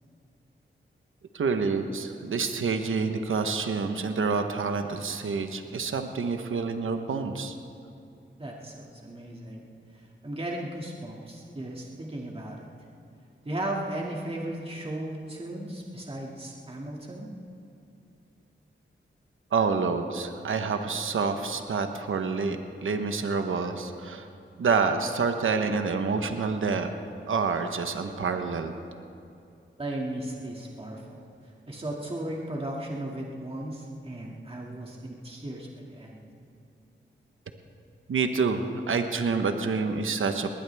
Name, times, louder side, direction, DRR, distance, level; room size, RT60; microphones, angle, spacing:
voice 1, 1.3-7.6 19.5-24.3 24.6-26.9 27.3-28.7 38.1-40.5, right 4 dB, 85° right, 6 dB, 1.1 m, -28 dB
voice 2, 8.4-9.6 10.2-12.7 13.4-17.3 29.8-31.2 31.7-36.2, right 1 dB, 30° right, -2 dB, 2.3 m, -36 dB
21.0 x 19.0 x 3.5 m, 2.6 s
cardioid pair, 65°, 20 cm